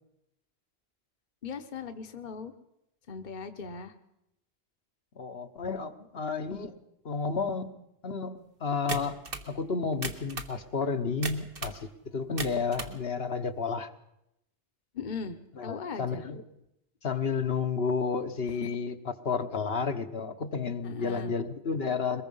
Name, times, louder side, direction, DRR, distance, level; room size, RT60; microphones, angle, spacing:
voice 1, 1.4-2.5 3.1-3.9 14.9-16.2 18.6-18.7 20.8-21.3, left 5 dB, 45° left, 8 dB, 1.2 m, -39 dB
voice 2, 5.2-6.8 7.0-7.7 8.0-9.2 9.5-11.8 12.1-13.9 15.6-16.4 17.0-22.2, left 5 dB, 65° left, 7 dB, 1.4 m, -31 dB
sound 1, 8.9-9.5 9.9-10.6 11.2-11.8 12.2-13.0, right 4 dB, 55° right, 1.7 m, -36 dB
22.5 x 21.0 x 5.5 m, 0.83 s
omnidirectional pair, 1.1 m